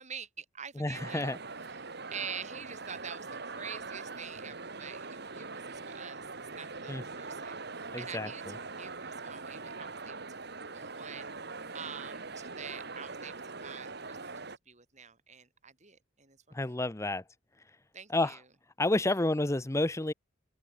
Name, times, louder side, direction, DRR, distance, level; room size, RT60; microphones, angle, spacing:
voice 1, 0.0-1.3 1.7-11.3 11.7-13.4 13.6-16.8 17.9-18.4, right 6 dB, 35° right, 7.7 m, -46 dB
voice 2, 0.8-1.4 6.9-7.0 7.9-8.6 16.5-17.2 18.1-18.4 18.8-20.1, left 2 dB, 15° left, 0.7 m, -30 dB
sound 1, 0.9-14.6, right 4 dB, 55° right, 2.7 m, -42 dB
open air
head